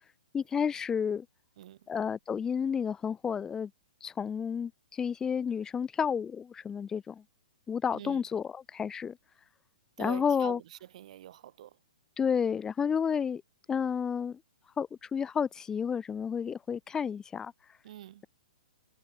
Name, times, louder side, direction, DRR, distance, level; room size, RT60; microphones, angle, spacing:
voice 1, 0.3-1.2 1.9-3.7 4.0-7.2 7.7-9.2 10.0-10.6 12.2-13.4 13.7-14.4 14.8-17.5, left 7 dB, 15° left, 1.4 m, -31 dB
voice 2, 10.0-10.6 10.9-11.7 17.8-18.2, right 12 dB, 55° right, 7.8 m, -44 dB
hypercardioid pair, 135°, 4 cm